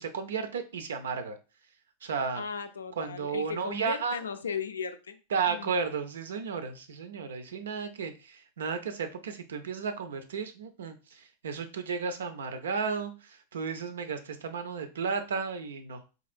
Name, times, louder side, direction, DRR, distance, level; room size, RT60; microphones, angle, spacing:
voice 1, 0.0-1.4 2.0-2.4 3.0-4.2 5.3-16.0, right 5 dB, 65° right, 9 dB, 0.5 m, -33 dB
voice 2, 2.3-5.2 5.5-5.7, left 6 dB, 70° left, 9 dB, 0.4 m, -36 dB
3.9 x 2.9 x 2.4 m, 0.32 s
figure-of-eight pair, 90°, 0 cm